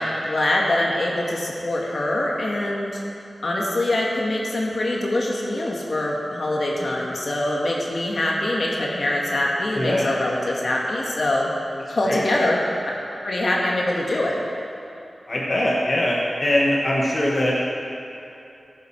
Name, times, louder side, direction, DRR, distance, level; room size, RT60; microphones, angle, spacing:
voice 1, 0.0-3.0 3.4-11.5 11.9-12.6 13.2-14.4, left 1 dB, 60° left, -2 dB, 2.0 m, -24 dB
voice 2, 9.7-10.1 12.0-12.2 15.3-17.6, left 1 dB, 35° left, -4 dB, 1.5 m, -22 dB
14.5 x 8.1 x 5.9 m, 2.8 s
wide cardioid pair, 105°, 0 cm